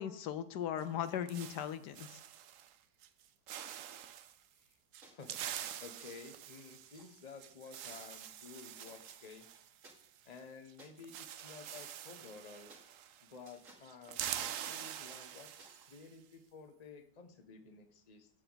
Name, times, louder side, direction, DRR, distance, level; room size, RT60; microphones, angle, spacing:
voice 1, 0.0-2.1, left 9 dB, 75° left, 12 dB, 1.2 m, -38 dB
sound 1, 0.8-2.7 3.0-3.2 3.5-4.3 4.9-10.4 10.7-10.8 11.0-13.4 13.6-16.1, right 10 dB, 65° right, 0.8 m, -45 dB
voice 2, 5.0-5.5 5.8-9.6 10.2-12.7 13.2-18.3, left 5 dB, 25° left, 6 dB, 1.0 m, -53 dB
sound 2, 5.0-5.3 6.0-6.2 6.9-7.0 7.9-9.0 9.8-9.9 10.8-10.9 11.7-11.9 12.7-12.9 13.4-13.9 14.6-14.8 15.6-16.0, right 2 dB, 45° right, 2.5 m, -59 dB
15.5 x 6.7 x 4.0 m, 0.76 s
omnidirectional pair, 1.9 m